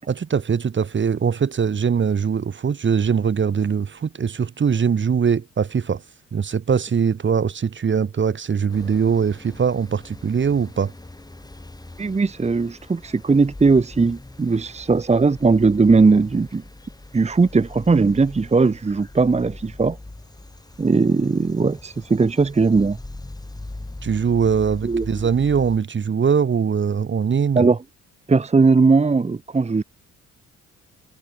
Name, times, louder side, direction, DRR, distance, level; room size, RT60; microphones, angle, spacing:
voice 1, 0.1-6.0 6.3-10.9 24.0-27.6, right 6 dB, 40° right, 1.8 m, -21 dB
sound 1, 8.7-25.8, left 2 dB, 15° left, 5.2 m, -41 dB
voice 2, 12.0-16.6 17.1-20.0 20.8-23.0 24.8-25.2 27.5-27.8 28.3-29.8, right 4 dB, 20° right, 1.3 m, -18 dB
cardioid pair, 90°, 30 cm